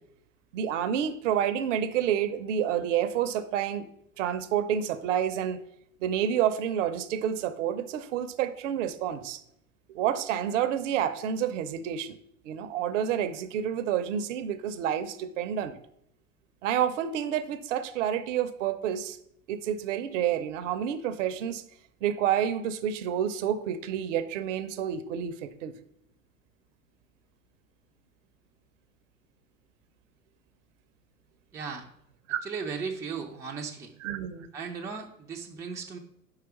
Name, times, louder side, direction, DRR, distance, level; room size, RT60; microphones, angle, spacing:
voice 1, 0.5-3.9 4.2-5.6 6.0-9.4 9.9-12.2 12.4-15.8 16.6-19.2 19.5-21.6 22.0-25.7 32.3-32.4 34.0-34.5, right 9 dB, 55° right, 12 dB, 0.7 m, -29 dB
voice 2, 31.5-31.9 32.4-33.9 34.5-36.0, right 5 dB, 5° right, 1 dB, 0.5 m, -36 dB
4.8 x 4.7 x 5.8 m, 0.72 s
figure-of-eight pair, 90°, 45 cm